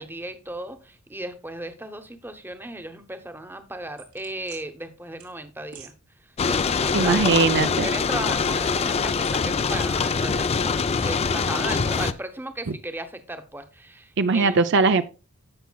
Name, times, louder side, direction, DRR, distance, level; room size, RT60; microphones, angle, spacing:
voice 1, 0.0-5.9 6.2-14.6, right 1 dB, 10° right, 0.9 m, -36 dB
sound 1, 4.0-4.6 5.2-5.3 5.7-5.9 6.4-7.5 7.8-8.7 9.2-9.9, right 3 dB, 90° right, 2.8 m, -45 dB
sound 2, 6.4-12.1, left 5 dB, 30° left, 0.4 m, -24 dB
voice 2, 6.9-7.9 14.2-15.0, right 4 dB, 55° right, 0.5 m, -20 dB
15.5 x 5.8 x 2.3 m
head